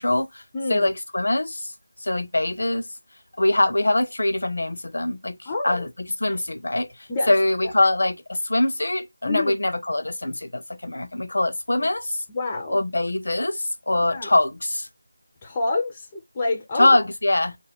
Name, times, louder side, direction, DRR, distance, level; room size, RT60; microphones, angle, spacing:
voice 1, 0.0-0.4 0.7-1.7 2.0-2.9 3.4-12.2 12.7-14.9 16.8-17.6, left 2 dB, 70° left, 0.5 m, -23 dB
voice 2, 0.5-0.9 5.5-5.9 6.3-6.4 7.1-7.3 7.6-7.7 9.2-9.5 11.8-11.9 12.3-12.8 14.1-14.3 15.4-17.0, left 2 dB, 15° left, 0.4 m, -28 dB
2.3 x 2.1 x 3.4 m
figure-of-eight pair, 175°, 0 cm